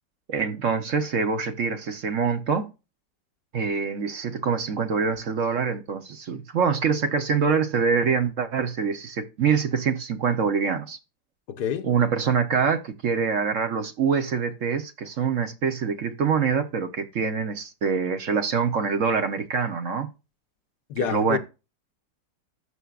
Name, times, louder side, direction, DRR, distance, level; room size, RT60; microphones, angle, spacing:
voice 1, 0.3-2.7 3.5-11.0 11.8-20.1 21.0-21.4, right 6 dB, 55° right, 1.1 m, -25 dB
voice 2, 11.5-11.9 20.9-21.4, left 8 dB, 70° left, 1.4 m, -27 dB
12.5 x 7.8 x 2.4 m
omnidirectional pair, 1.9 m